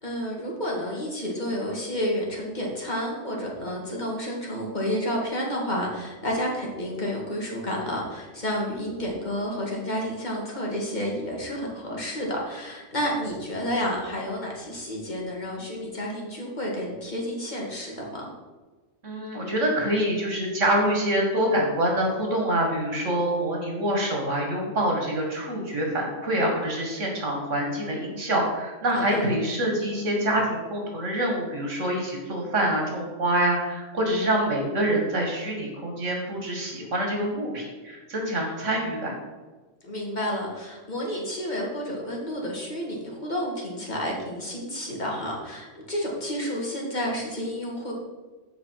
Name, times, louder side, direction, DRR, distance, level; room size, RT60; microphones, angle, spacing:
voice 1, 0.0-18.2 28.9-29.3 39.8-47.9, equal, 35° left, -2 dB, 2.4 m, -30 dB
voice 2, 19.0-39.2, right 1 dB, 75° right, -1 dB, 2.5 m, -26 dB
14.0 x 5.1 x 4.9 m, 1.3 s
omnidirectional pair, 1.3 m